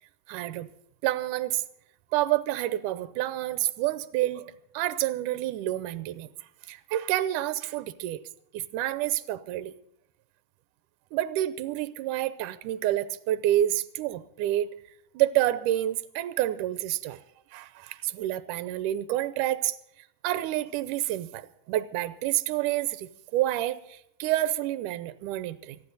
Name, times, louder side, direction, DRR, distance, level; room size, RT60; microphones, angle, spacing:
voice 1, 0.3-0.7 1.0-1.6 2.1-4.5 4.7-6.3 6.7-8.2 8.5-9.7 11.1-14.7 15.1-17.2 17.5-19.8 20.2-25.8, right 14 dB, 80° right, 14 dB, 2.3 m, -28 dB
25.5 x 10.5 x 4.0 m, 0.74 s
omnidirectional pair, 3.7 m